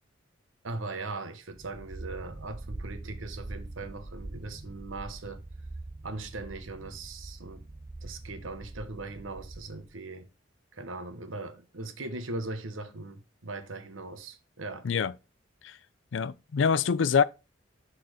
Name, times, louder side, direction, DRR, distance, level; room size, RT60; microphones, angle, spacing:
voice 1, 0.6-5.4 6.0-7.6 8.0-10.3 10.7-14.9, right 2 dB, 85° right, 1.1 m, -39 dB
Dark Sci-Fi Wind, 1.5-9.9, right 2 dB, 25° right, 0.5 m, -43 dB
voice 2, 16.1-17.2, left 6 dB, 70° left, 0.4 m, -25 dB
6.3 x 4.2 x 5.0 m
head